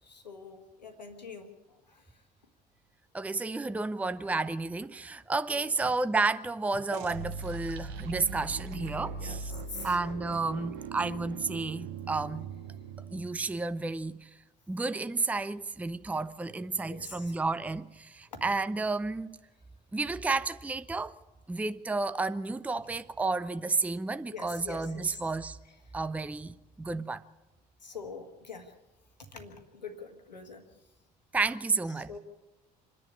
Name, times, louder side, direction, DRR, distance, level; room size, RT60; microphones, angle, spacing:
voice 1, 0.0-2.2 5.5-6.0 7.5-7.6 9.2-10.0 11.5-11.6 16.9-17.3 18.3-18.5 24.3-25.2 25.7-25.9 27.8-28.7 29.2-30.6 31.9-32.2, left 4 dB, 85° left, 1.7 m, -45 dB
voice 2, 3.1-9.5 9.8-12.5 13.1-14.3 14.7-19.3 19.9-21.2 21.5-25.6 25.9-27.2 31.3-32.1, right 3 dB, 5° right, 0.6 m, -31 dB
sound 1, 6.9-13.5, right 5 dB, 55° right, 1.2 m, -40 dB
26.5 x 10.5 x 9.7 m
figure-of-eight pair, 55°, 21 cm